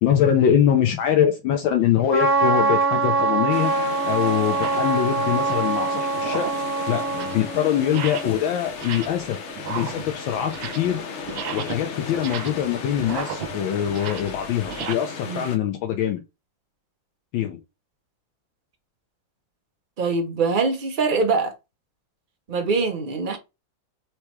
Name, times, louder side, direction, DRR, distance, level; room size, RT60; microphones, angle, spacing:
voice 1, 0.0-3.7 4.1-6.5 6.9-9.4 9.7-11.0 11.5-16.2 17.3-17.6, left 9 dB, 80° left, 1.4 m, -23 dB
Trumpet, 2.1-8.3, right 3 dB, 10° right, 1.0 m, -24 dB
sound 1, 2.9-3.1 3.8-3.9 4.4-4.9 5.3-5.7 6.1-6.7 7.0-7.5 7.9-8.4 8.7-9.3 9.6-11.0 11.2-14.9, right 8 dB, 90° right, 1.4 m, -35 dB
sound 2, 3.5-15.6, left 5 dB, 60° left, 0.7 m, -35 dB
voice 2, 20.0-21.5 22.5-23.4, right 4 dB, 60° right, 0.5 m, -23 dB
4.6 x 3.0 x 3.2 m
omnidirectional pair, 2.1 m